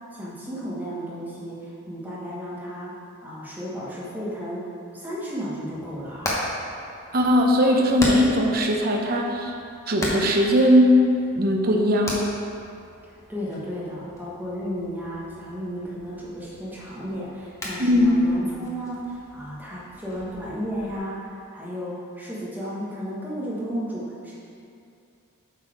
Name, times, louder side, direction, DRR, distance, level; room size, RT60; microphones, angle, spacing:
voice 1, 0.1-6.4 13.0-24.3, equal, 10° right, -7 dB, 1.2 m, -33 dB
Hammer, 5.7-21.0, left 1 dB, 15° left, 0.9 m, -37 dB
voice 2, 7.1-9.5 9.9-10.9 11.3-12.2 17.8-18.2, equal, 40° right, 1 dB, 0.7 m, -19 dB
7.5 x 4.1 x 4.8 m, 2.6 s
head